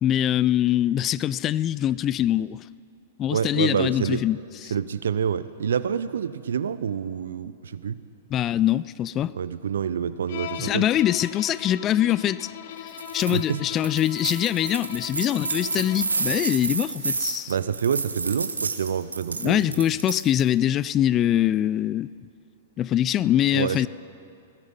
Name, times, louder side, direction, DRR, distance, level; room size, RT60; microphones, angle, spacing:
voice 1, 0.0-2.6 3.2-4.4 8.3-9.3 10.6-12.5 12.8-17.6 19.4-22.1 22.8-23.9, left 11 dB, 30° left, 0.3 m, -23 dB
voice 2, 3.3-4.2 4.7-8.0 9.3-10.8 13.3-13.6 17.5-19.8 23.5-23.8, right 7 dB, 70° right, 0.6 m, -27 dB
Bowed string instrument, 10.3-16.2, left 10 dB, 60° left, 0.9 m, -39 dB
sound 1, 12.9-13.4 13.8-20.5, right 4 dB, 85° right, 1.1 m, -30 dB
19.0 x 13.0 x 5.4 m
figure-of-eight pair, 105°, 0 cm